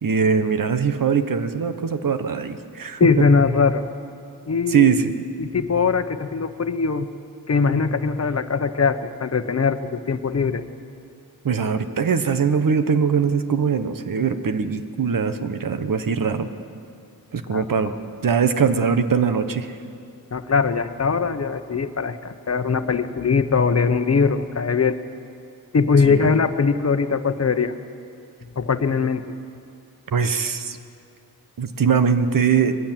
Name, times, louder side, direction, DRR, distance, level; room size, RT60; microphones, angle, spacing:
voice 1, 0.0-3.1 4.7-5.1 11.4-16.5 17.3-17.9 18.2-19.8 26.0-26.3 30.1-30.8 31.6-32.8, right 6 dB, 60° right, 9 dB, 1.3 m, -21 dB
voice 2, 3.0-3.9 4.5-4.9 5.4-7.1 7.5-10.6 17.5-17.7 20.3-25.0 25.7-27.7 28.6-29.2, left 5 dB, 45° left, 10 dB, 1.0 m, -21 dB
22.0 x 16.0 x 9.1 m, 2.4 s
wide cardioid pair, 100°, 36 cm